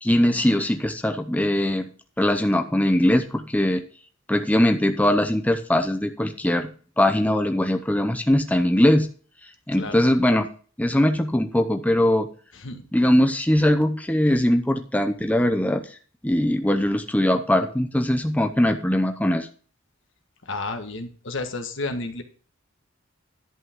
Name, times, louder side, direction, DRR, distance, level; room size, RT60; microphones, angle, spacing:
voice 1, 0.0-1.9 2.2-3.8 4.3-9.1 9.7-10.5 10.8-12.3 12.9-15.8 16.2-19.5, left 1 dB, 10° left, 6 dB, 0.7 m, -21 dB
voice 2, 12.5-12.9 20.4-22.2, left 3 dB, 65° left, 6 dB, 1.6 m, -31 dB
11.0 x 8.5 x 3.7 m, 0.41 s
head